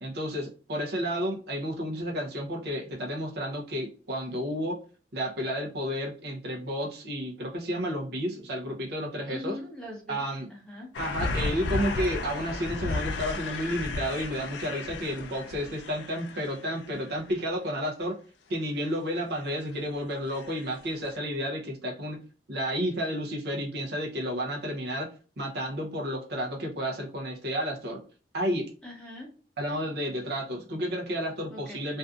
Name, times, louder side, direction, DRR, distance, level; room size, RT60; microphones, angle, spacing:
voice 1, 0.0-4.8 5.1-9.5 10.1-10.5 11.0-18.2 18.5-22.2 22.5-25.1 25.4-28.0 28.3-28.7 29.6-32.0, equal, 65° right, 1 dB, 0.6 m, -31 dB
voice 2, 9.3-10.2 10.5-10.9 28.8-29.3 31.5-31.8, left 1 dB, 5° left, -2 dB, 0.8 m, -41 dB
sound 1, 10.9-17.3 19.4-19.9 20.3-20.9 21.1-21.2, left 3 dB, 85° left, 0.3 m, -34 dB
2.6 x 2.4 x 2.3 m, 0.39 s
head